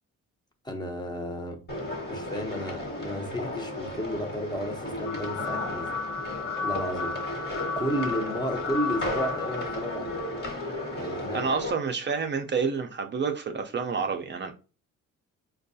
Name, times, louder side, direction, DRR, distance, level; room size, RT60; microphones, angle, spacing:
voice 1, 0.6-1.6 2.1-5.9 6.6-10.2 10.9-11.4, equal, 15° left, 0.7 m, -33 dB
sound 1, 1.7-11.7, left 1 dB, 35° left, 1.3 m, -35 dB
sound 2, 5.0-11.1, left 5 dB, 65° left, 0.8 m, -34 dB
voice 2, 11.3-14.5, right 5 dB, 40° right, 0.5 m, -29 dB
4.5 x 2.3 x 2.6 m
cardioid pair, 90°, 30 cm